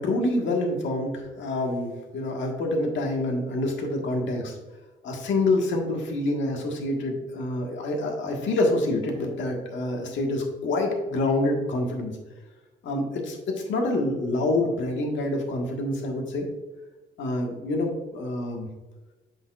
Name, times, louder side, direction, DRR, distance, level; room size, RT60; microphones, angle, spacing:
voice 1, 0.0-4.6 5.0-12.1 12.8-13.4 13.7-16.5 17.2-18.7, left 2 dB, 70° left, 1 dB, 1.6 m, -27 dB
7.4 x 6.2 x 2.4 m, 1.2 s
cardioid pair, 90°, 20 cm